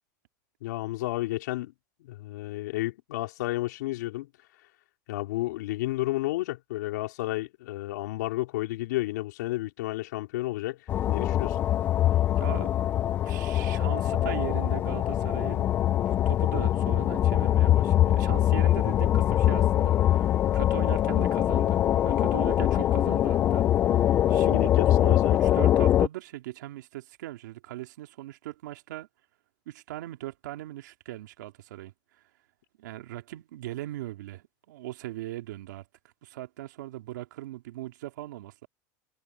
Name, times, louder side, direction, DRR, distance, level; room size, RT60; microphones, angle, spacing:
voice 1, 0.6-1.7 2.0-4.3 5.1-10.8 11.1-11.6 22.8-22.9 24.3-25.4, left 17 dB, 75° left, 4.3 m, -31 dB
sound 1, 10.9-26.1, left 12 dB, 20° left, 0.4 m, -23 dB
voice 2, 12.4-12.9 13.2-24.7 25.0-29.1 29.7-31.9 32.8-35.8 36.2-38.7, right 15 dB, 90° right, 2.4 m, -39 dB
supercardioid pair, 170°, 10 cm